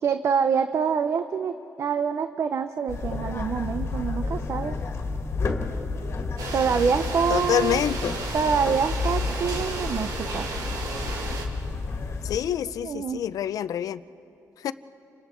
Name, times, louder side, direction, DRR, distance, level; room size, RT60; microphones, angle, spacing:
voice 1, 0.0-4.8 6.5-7.8 8.3-10.5 12.8-13.2, right 6 dB, 45° right, 9 dB, 0.6 m, -26 dB
sound 1, 2.9-12.4, left 3 dB, 40° left, 1.7 m, -31 dB
sound 2, 6.4-11.5, right 3 dB, 85° right, 2.2 m, -34 dB
voice 2, 7.3-8.2 12.2-14.0 14.6-14.7, left 10 dB, 70° left, 15 dB, 0.5 m, -26 dB
29.5 x 26.0 x 4.5 m, 2.9 s
cardioid pair, 135°, 6 cm